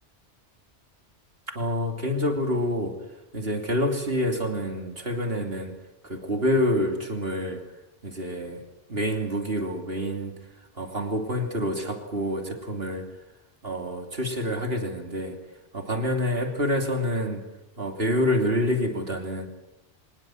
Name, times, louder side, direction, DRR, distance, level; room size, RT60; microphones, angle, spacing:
voice 1, 1.5-3.0 3.3-5.8 6.0-7.6 8.0-8.6 8.9-10.4 10.7-13.1 13.6-15.4 15.7-17.4 17.8-19.5, equal, 55° right, 5 dB, 3.2 m, -27 dB
25.0 x 19.5 x 7.8 m, 0.88 s
omnidirectional pair, 1.2 m